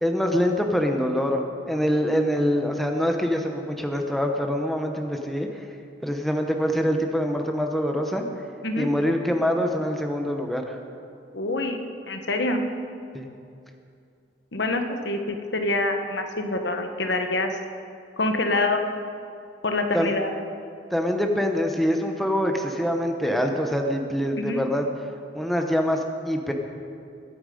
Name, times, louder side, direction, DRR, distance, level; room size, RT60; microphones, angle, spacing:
voice 1, 0.0-5.5 6.0-8.2 8.8-10.8 13.1-13.3 19.9-20.1 20.9-24.9 25.3-26.0 26.3-26.5, equal, ahead, 3 dB, 0.9 m, -24 dB
voice 2, 11.3-11.8 12.1-12.6 14.5-17.5 18.2-18.9 19.6-20.3 24.4-24.6, left 2 dB, 65° left, 5 dB, 1.2 m, -26 dB
21.5 x 8.7 x 5.2 m, 2.4 s
head